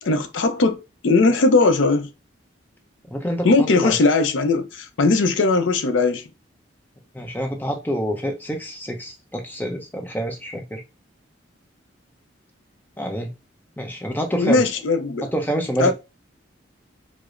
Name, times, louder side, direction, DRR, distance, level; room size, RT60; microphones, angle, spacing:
voice 1, 0.0-2.1 3.4-6.3 14.4-15.3 15.8-15.9, left 3 dB, 80° left, 0.5 m, -19 dB
voice 2, 3.1-4.0 7.1-10.8 13.0-13.3 13.8-14.7 15.3-15.9, equal, 10° left, 0.6 m, -27 dB
4.8 x 2.0 x 2.4 m
head